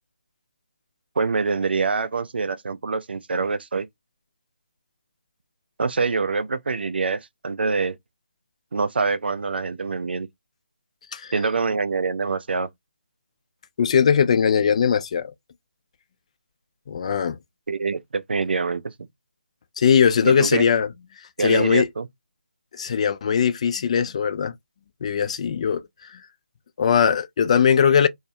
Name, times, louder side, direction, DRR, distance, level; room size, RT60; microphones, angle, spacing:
voice 1, 1.2-3.9 5.8-8.0 8.7-10.3 11.3-12.7 17.7-18.9 20.2-20.6 21.4-22.1, right 4 dB, 70° right, 0.4 m, -25 dB
voice 2, 13.8-15.3 16.9-17.4 19.8-20.9 21.4-21.9 22.8-24.5 25.0-25.8 26.8-28.1, left 7 dB, 35° left, 0.4 m, -20 dB
2.3 x 2.1 x 2.6 m
figure-of-eight pair, 155°, 6 cm